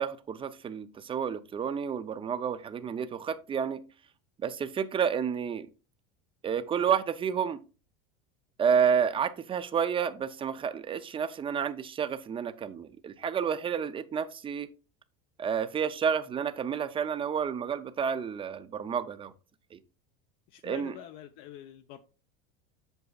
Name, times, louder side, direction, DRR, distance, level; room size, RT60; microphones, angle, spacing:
voice 1, 0.0-3.8 4.4-5.7 6.4-7.6 8.6-14.7 15.4-19.3 19.7-19.8 20.6-20.9, right 7 dB, 20° right, 0.5 m, -30 dB
voice 2, 20.5-22.0, left 11 dB, 55° left, 0.7 m, -45 dB
8.0 x 6.7 x 2.3 m
supercardioid pair, 130°, 29 cm